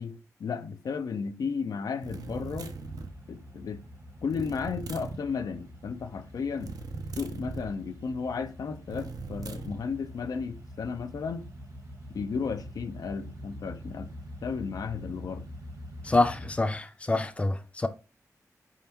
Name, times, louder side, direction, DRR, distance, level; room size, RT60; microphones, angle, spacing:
voice 1, 0.0-2.8 3.3-3.8 4.2-11.5 12.1-14.1 14.4-15.5, left 5 dB, 85° left, 0.4 m, -34 dB
sound 1, 2.0-3.2 4.3-5.2 6.6-7.7 8.9-9.8, right 4 dB, 90° right, 0.4 m, -39 dB
sound 2, 2.1-16.6, equal, 70° right, 1.1 m, -45 dB
voice 2, 16.0-17.9, left 2 dB, 20° left, 0.4 m, -26 dB
4.2 x 3.5 x 2.8 m
wide cardioid pair, 90°, 6 cm